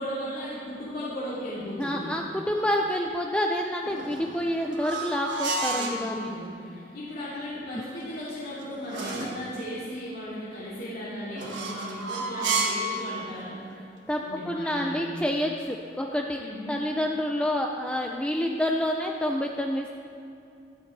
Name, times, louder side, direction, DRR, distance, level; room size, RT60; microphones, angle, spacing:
voice 1, 0.0-2.1 5.7-13.5 14.2-15.2 16.4-16.8, equal, 55° left, -10 dB, 2.9 m, -36 dB
voice 2, 1.8-6.3 9.5-9.6 14.1-16.4 16.7-19.9, left 1 dB, 5° left, 1 dB, 0.5 m, -28 dB
sound 1, 3.9-6.0 8.0-9.4 11.3-12.9, right 3 dB, 75° right, 1.5 m, -31 dB
14.5 x 12.0 x 3.3 m, 2.7 s
head